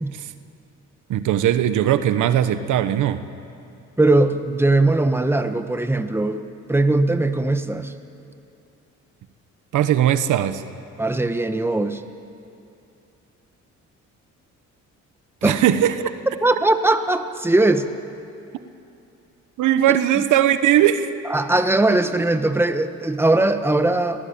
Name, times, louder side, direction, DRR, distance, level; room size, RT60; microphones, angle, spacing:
voice 1, 1.1-3.2 9.7-10.6 15.4-15.9 19.6-21.1, right 11 dB, 85° right, 11 dB, 1.3 m, -19 dB
voice 2, 4.0-7.9 11.0-12.0 15.4-15.6 16.4-17.9 21.3-24.2, right 2 dB, 10° right, 8 dB, 1.4 m, -20 dB
29.5 x 18.5 x 8.8 m, 2.6 s
cardioid pair, 90°, 30 cm